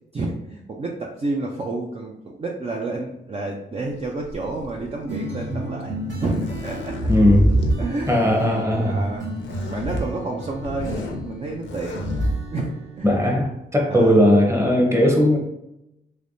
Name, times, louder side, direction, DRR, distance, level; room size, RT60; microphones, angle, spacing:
voice 1, 0.1-5.9 6.2-7.1 7.8-9.4 9.7-12.1 12.5-13.3 13.9-14.2, right 2 dB, 35° right, -1 dB, 0.5 m, -30 dB
sound 1, 4.2-5.0 5.9-7.8 9.4-10.0 10.5-11.2 11.6-12.3, equal, 80° left, 0.6 m, -25 dB
sound 2, 5.1-13.5, right 1 dB, 70° right, 1.2 m, -34 dB
voice 2, 7.1-7.5 8.1-9.0 13.0-15.4, equal, 15° right, 0 dB, 1.0 m, -18 dB
3.3 x 3.2 x 2.6 m, 0.89 s
cardioid pair, 75°, 19 cm